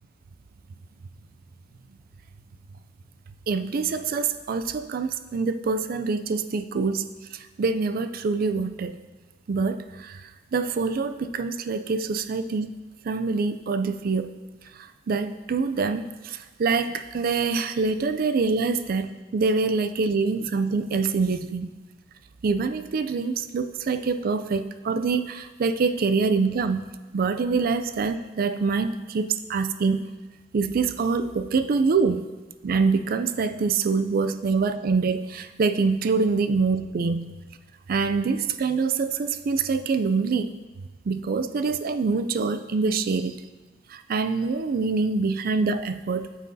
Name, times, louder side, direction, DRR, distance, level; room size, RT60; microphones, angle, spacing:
voice 1, 3.5-7.0 7.3-9.0 9.5-10.2 10.5-12.7 13.0-14.3 15.1-21.7 22.4-26.9 27.1-30.0 30.5-32.3 32.6-37.3 37.9-40.5 41.1-43.4 43.9-46.3, right 4 dB, 50° right, 10 dB, 0.4 m, -25 dB
9.1 x 6.3 x 2.7 m, 1.2 s
head